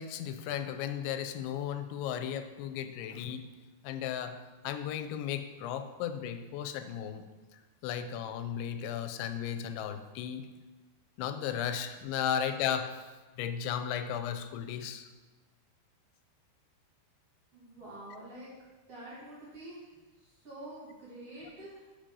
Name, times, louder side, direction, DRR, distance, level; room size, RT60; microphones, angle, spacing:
voice 1, 0.0-3.5 3.8-4.4 4.6-7.2 7.8-10.5 11.2-12.9 13.4-15.1, left 9 dB, 90° left, 9 dB, 3.0 m, -35 dB
voice 2, 17.5-18.5 18.9-19.9 20.2-21.9, right 1 dB, 45° right, -8 dB, 2.6 m, -47 dB
8.8 x 5.2 x 5.4 m, 1.2 s
omnidirectional pair, 5.1 m